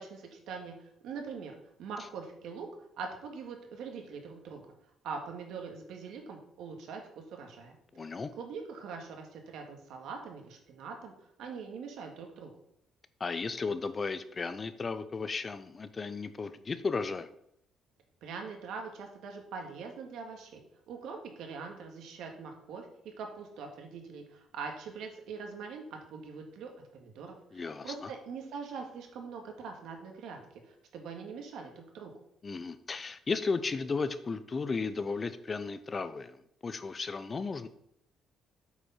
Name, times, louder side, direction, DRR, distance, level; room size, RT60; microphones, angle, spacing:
voice 1, 0.0-2.7 3.0-4.6 5.0-7.8 8.4-11.1 11.4-12.5 18.2-32.1, right 5 dB, 80° right, 3 dB, 1.8 m, -43 dB
voice 2, 7.9-8.3 13.2-17.3 27.5-28.1 32.4-36.4 36.6-37.7, left 4 dB, 25° left, 12 dB, 0.5 m, -34 dB
8.1 x 5.2 x 5.6 m, 0.74 s
cardioid pair, 145°, 0 cm